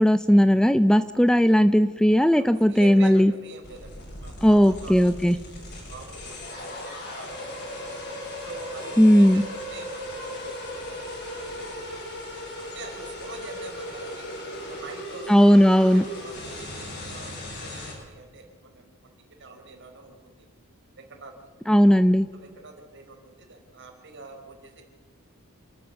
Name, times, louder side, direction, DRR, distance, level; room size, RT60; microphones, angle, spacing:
voice 1, 0.0-3.3 4.4-5.4 9.0-9.4 15.3-16.0 21.7-22.3, equal, 5° left, 12 dB, 0.5 m, -17 dB
voice 2, 2.3-5.4 5.9-8.0 8.4-8.9 9.2-11.1 11.4-12.2 12.6-14.3 14.6-19.1 19.4-20.5 21.0-21.5 22.3-24.8, right 3 dB, 60° right, 3 dB, 4.6 m, -44 dB
sound 1, 3.6-17.9, left 1 dB, 50° left, 7.3 m, -37 dB
28.5 x 13.0 x 7.0 m, 1.5 s
head